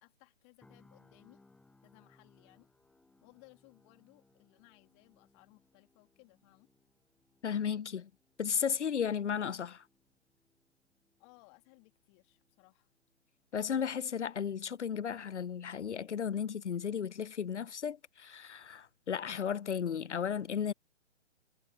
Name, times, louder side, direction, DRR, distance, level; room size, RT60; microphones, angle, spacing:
voice 1, 0.0-1.5 1.8-2.7 3.2-6.7 11.2-12.9, left 33 dB, 25° left, 2.8 m, -62 dB
sound 1, 0.6-14.6 15.0-15.2, left 2 dB, 5° left, 1.4 m, -69 dB
voice 2, 7.4-8.1 8.4-9.8 13.5-20.7, left 7 dB, 75° left, 0.6 m, -34 dB
figure-of-eight pair, 130°, 35 cm